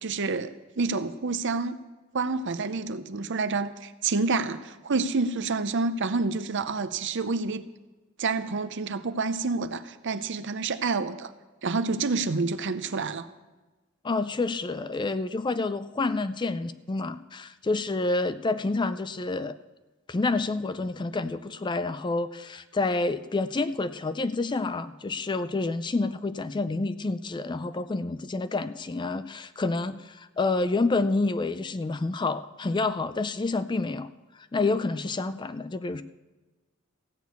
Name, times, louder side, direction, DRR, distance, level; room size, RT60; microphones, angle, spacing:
voice 1, 0.0-1.7 2.1-7.6 8.2-11.3 11.6-13.3, right 4 dB, 55° right, 12 dB, 0.7 m, -28 dB
voice 2, 14.0-19.6 20.1-34.1 34.5-36.0, left 3 dB, 20° left, 13 dB, 0.4 m, -28 dB
15.0 x 6.2 x 8.3 m, 1.2 s
head